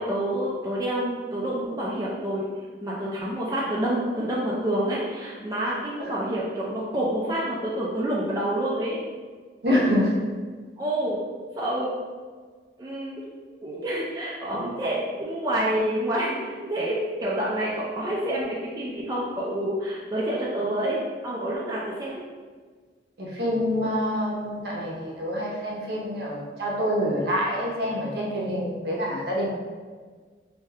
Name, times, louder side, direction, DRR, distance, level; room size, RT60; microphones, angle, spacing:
voice 1, 0.0-2.5 2.8-9.0 10.8-11.2 11.6-11.9 12.8-13.2 13.6-22.2, right 1 dB, 20° right, -6 dB, 0.3 m, -28 dB
voice 2, 9.6-10.2 23.2-29.5, equal, 60° right, -3 dB, 0.6 m, -26 dB
2.7 x 2.1 x 3.3 m, 1.5 s
head